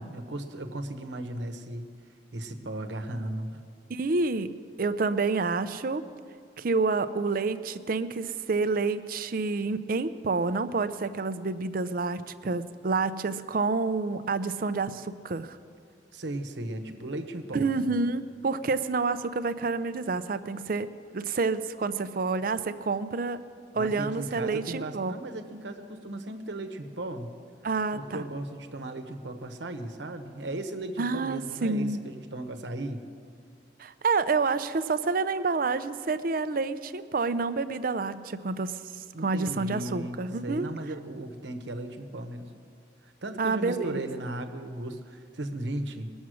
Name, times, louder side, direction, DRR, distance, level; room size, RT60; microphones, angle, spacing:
voice 1, 0.0-1.9 2.3-3.6 16.1-18.0 23.8-27.3 27.9-33.0 39.1-42.6 43.0-46.1, right 1 dB, 85° right, 6 dB, 1.0 m, -36 dB
voice 2, 3.9-6.0 6.6-15.6 17.5-20.9 21.1-23.4 23.7-25.1 27.6-28.2 31.0-32.0 33.8-40.7 43.4-44.1, right 4 dB, 50° right, 13 dB, 0.5 m, -28 dB
21.0 x 7.2 x 6.3 m, 2.2 s
head